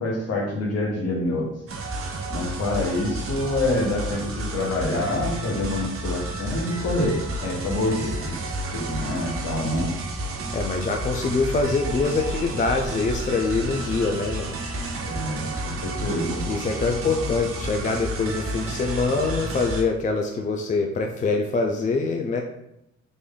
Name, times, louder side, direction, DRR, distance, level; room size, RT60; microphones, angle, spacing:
voice 1, 0.0-1.5 2.3-8.4 8.7-9.9 15.0-16.5, left 1 dB, 55° left, 0 dB, 1.1 m, -26 dB
sound 1, 1.7-19.8, right 1 dB, 45° right, 0.7 m, -31 dB
voice 2, 10.5-14.5 16.5-22.4, left 3 dB, 25° left, 3 dB, 0.4 m, -24 dB
3.3 x 2.5 x 3.7 m, 0.82 s
cardioid pair, 90°, 30 cm